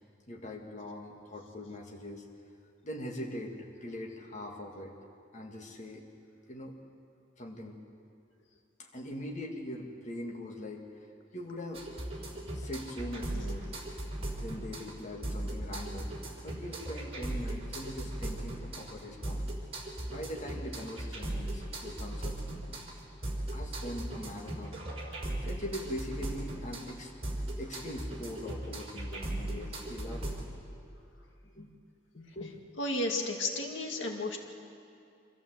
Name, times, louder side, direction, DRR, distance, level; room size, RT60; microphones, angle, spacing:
voice 1, 0.3-2.3 2.8-4.9 5.3-6.0 6.5-6.8 7.4-7.8 8.8-11.1 11.3-11.9 12.5-13.7 14.0-16.2 16.4-19.4 20.1-22.4 23.5-24.8 25.4-27.1 27.6-30.3 31.4-31.7 32.1-32.6, left 1 dB, 40° left, 0 dB, 1.9 m, -42 dB
sound 1, 11.7-30.4, right 1 dB, 30° right, 3.6 m, -38 dB
voice 2, 32.8-34.4, left 2 dB, 80° left, 2 dB, 2.1 m, -32 dB
25.5 x 15.0 x 7.6 m, 2.5 s
head